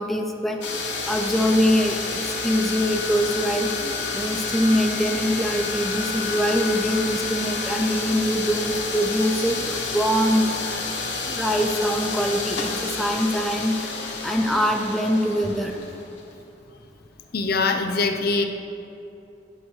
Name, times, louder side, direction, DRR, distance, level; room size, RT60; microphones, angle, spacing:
voice 1, 0.0-10.9 11.3-14.0 14.2-15.8, equal, ahead, 2 dB, 0.4 m, -24 dB
sound 1, 0.6-16.3, left 4 dB, 85° left, 1.0 m, -30 dB
voice 2, 17.3-18.4, left 3 dB, 60° left, 5 dB, 0.5 m, -22 dB
9.8 x 4.8 x 3.9 m, 2.7 s
head